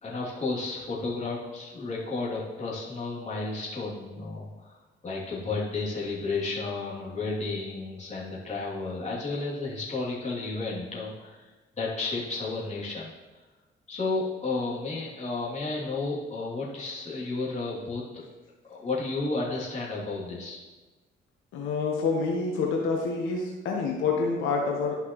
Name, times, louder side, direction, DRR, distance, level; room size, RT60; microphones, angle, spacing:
voice 1, 0.0-4.8 5.0-11.5 11.8-13.1 13.9-18.2 18.7-20.6, left 3 dB, 35° left, -6 dB, 2.8 m, -32 dB
voice 2, 21.5-24.9, left 4 dB, 85° left, -1 dB, 1.1 m, -27 dB
12.0 x 5.8 x 3.1 m, 1.2 s
cardioid pair, 90°, 20 cm